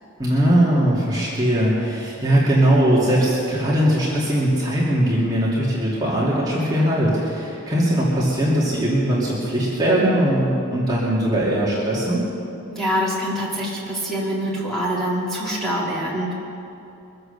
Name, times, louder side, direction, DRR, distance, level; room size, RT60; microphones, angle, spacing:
voice 1, 0.2-12.2, right 1 dB, 20° right, -7 dB, 2.6 m, -20 dB
voice 2, 12.7-16.3, equal, ahead, -7 dB, 2.9 m, -25 dB
23.5 x 7.9 x 6.8 m, 2.8 s
head